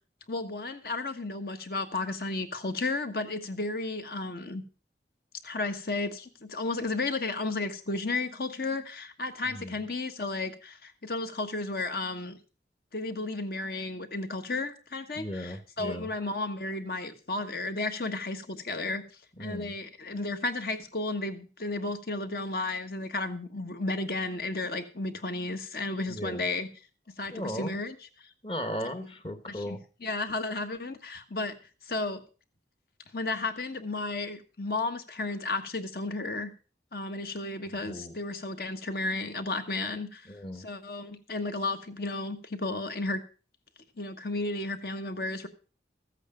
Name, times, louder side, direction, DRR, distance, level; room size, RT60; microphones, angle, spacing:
voice 1, 0.3-4.6 5.4-12.4 12.9-19.0 19.4-26.7 27.2-27.9 29.5-29.8 30.0-31.5 31.9-32.2 33.1-36.5 36.9-43.2 44.0-45.5, left 2 dB, 55° left, 7 dB, 1.3 m, -33 dB
voice 2, 9.4-9.8 15.1-16.1 19.4-19.7 26.1-26.4 27.3-27.8 28.4-29.8 37.8-38.2 40.3-40.7, equal, 30° left, 10 dB, 1.2 m, -37 dB
14.0 x 8.3 x 5.1 m, 0.36 s
head